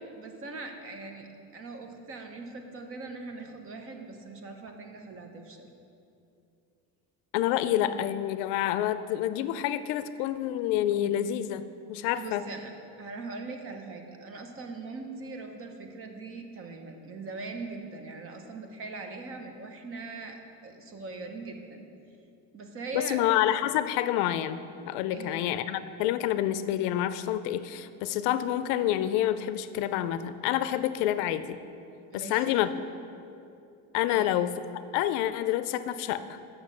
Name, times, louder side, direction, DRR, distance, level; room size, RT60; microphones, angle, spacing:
voice 1, 0.2-1.3 1.5-5.7 12.2-12.7 13.0-21.9 22.5-23.2 25.1-25.5 32.1-32.6 34.1-34.3, right 3 dB, 35° right, 4 dB, 0.9 m, -41 dB
voice 2, 7.3-12.4 22.9-24.6 24.9-31.6 32.1-32.7 33.9-36.4, left 12 dB, 70° left, 13 dB, 0.5 m, -28 dB
7.3 x 6.2 x 6.3 m, 2.6 s
cardioid pair, 145°, 39 cm